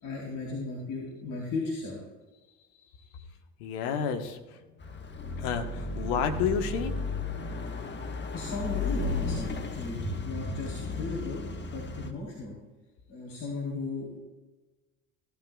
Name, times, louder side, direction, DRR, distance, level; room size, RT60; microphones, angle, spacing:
voice 1, 0.0-2.0 7.7-7.9 8.3-11.4 11.7-12.6 13.1-14.2, left 2 dB, 50° left, -5 dB, 3.7 m, -35 dB
voice 2, 3.6-4.4 5.4-7.3, left 7 dB, 65° left, 6 dB, 1.4 m, -30 dB
Car passing by / Accelerating revving vroom, 4.8-12.1, left 3 dB, 25° left, 1.4 m, -34 dB
17.0 x 13.0 x 2.4 m, 1.2 s
hypercardioid pair, 65°, 43 cm